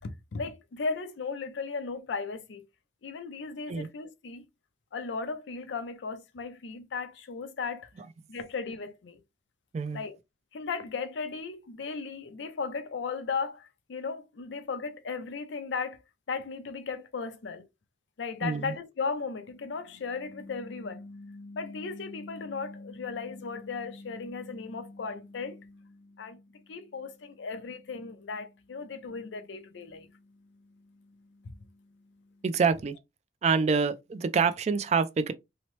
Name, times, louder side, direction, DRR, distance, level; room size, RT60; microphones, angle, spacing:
voice 1, 0.0-2.6 3.0-4.5 4.9-7.9 8.3-9.2 9.9-10.2 10.5-16.0 16.3-17.7 18.2-30.2 31.4-31.6, left 4 dB, 85° left, 0.5 m, -36 dB
voice 2, 18.4-18.7 32.4-33.0 33.4-35.3, right 5 dB, 40° right, 0.3 m, -26 dB
2.8 x 2.0 x 3.0 m
head